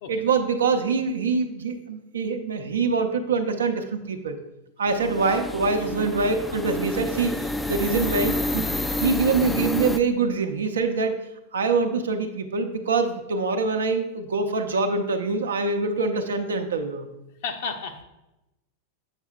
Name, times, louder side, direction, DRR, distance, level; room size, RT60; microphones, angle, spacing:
voice 1, 0.1-4.4 4.8-8.7 9.0-11.2 11.5-17.1, right 4 dB, 65° right, 7 dB, 0.5 m, -24 dB
sound 1, 4.9-10.0, left 1 dB, 5° left, 0.3 m, -29 dB
voice 2, 17.4-18.0, left 5 dB, 50° left, 6 dB, 0.6 m, -33 dB
8.0 x 6.2 x 2.2 m, 0.94 s
figure-of-eight pair, 90°, 0 cm